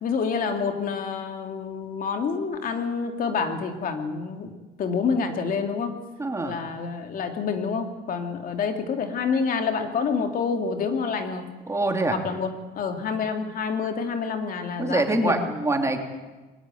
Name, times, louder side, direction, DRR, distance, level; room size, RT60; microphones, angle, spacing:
voice 1, 0.0-4.5 4.8-5.9 6.4-11.5 12.1-12.5 12.8-15.4, left 5 dB, 55° left, 5 dB, 2.7 m, -27 dB
voice 2, 6.2-6.7 11.7-12.1 14.8-16.0, right 2 dB, 15° right, 3 dB, 3.0 m, -25 dB
21.5 x 17.0 x 9.2 m, 1.2 s
cardioid pair, 110°, 17 cm